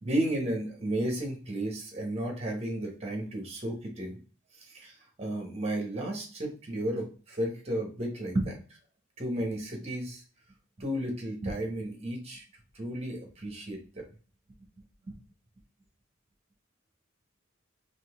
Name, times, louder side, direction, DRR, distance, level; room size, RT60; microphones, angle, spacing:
voice 1, 0.0-4.2 4.7-4.9 5.2-8.6 9.2-10.2 10.8-12.4 12.7-14.0 15.1-15.2, right 1 dB, 30° right, 1 dB, 1.2 m, -33 dB
4.2 x 2.7 x 3.6 m, 0.37 s
head